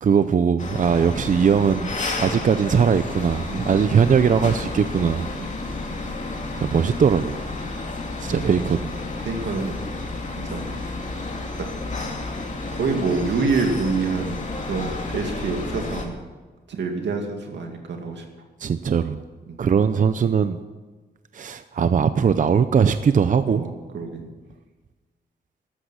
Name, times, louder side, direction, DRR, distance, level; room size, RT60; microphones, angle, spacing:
voice 1, 0.0-1.9 2.2-5.3 6.6-7.4 8.2-8.8 18.6-19.2 19.6-20.6 21.3-23.6, right 6 dB, 45° right, 11 dB, 0.6 m, -20 dB
sound 1, 0.6-16.1, left 3 dB, 45° left, 2.6 m, -31 dB
voice 2, 8.3-8.6 9.2-9.8 10.4-10.6 11.6-11.7 12.7-16.2 16.7-18.2 23.5-24.3, right 4 dB, 90° right, 3 dB, 2.4 m, -27 dB
13.5 x 12.5 x 6.4 m, 1.3 s
wide cardioid pair, 125°, 18 cm